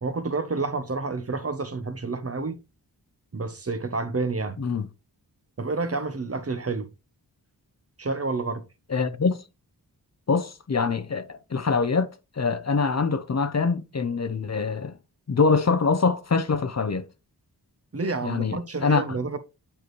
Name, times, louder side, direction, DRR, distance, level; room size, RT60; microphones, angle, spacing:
voice 1, 0.0-2.6 3.3-4.6 5.6-6.9 8.0-8.6 17.9-19.4, right 3 dB, 35° right, 0.8 m, -29 dB
voice 2, 4.6-4.9 8.9-9.4 10.3-12.1 12.4-14.9 15.3-17.1 18.2-19.0, left 4 dB, 40° left, 0.7 m, -24 dB
8.6 x 4.9 x 3.1 m
wide cardioid pair, 70°, 41 cm